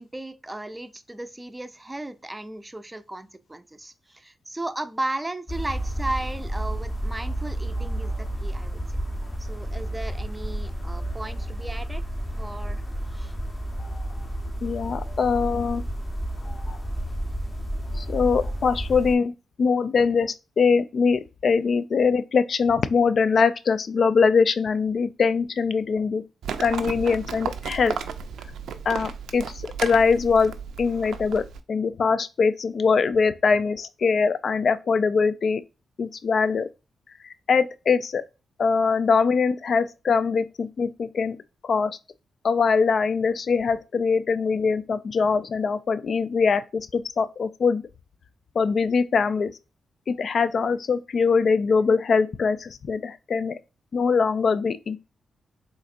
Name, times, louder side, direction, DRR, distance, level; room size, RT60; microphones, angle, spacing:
voice 1, 0.0-8.1 8.4-8.8 9.4-12.0 12.3-12.8 13.1-13.3, right 2 dB, 15° right, 0.5 m, -35 dB
sound 1, 5.5-19.1, right 1 dB, 30° left, 1.0 m, -31 dB
voice 2, 14.6-15.8 17.9-19.3 19.6-26.2 26.6-28.0 28.9-30.5 30.8-35.6 36.0-36.7 37.5-38.2 38.6-41.4 41.6-42.0 42.4-47.8 48.5-49.5 50.1-53.6 53.9-55.0, left 5 dB, 60° left, 0.3 m, -22 dB
Livestock farm animals working animals, 26.4-31.6, right 6 dB, 80° right, 0.4 m, -34 dB
4.0 x 2.5 x 2.5 m
supercardioid pair, 50°, 0 cm